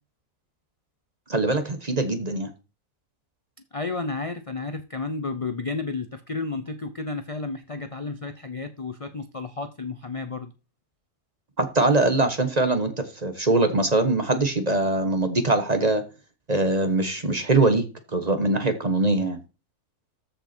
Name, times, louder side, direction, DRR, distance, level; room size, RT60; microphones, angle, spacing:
voice 1, 1.3-2.5 11.6-16.0 16.5-17.9 18.1-19.4, right 2 dB, 30° right, 1.3 m, -22 dB
voice 2, 3.7-10.5, left 3 dB, 35° left, 0.6 m, -32 dB
14.0 x 5.9 x 4.4 m
omnidirectional pair, 1.6 m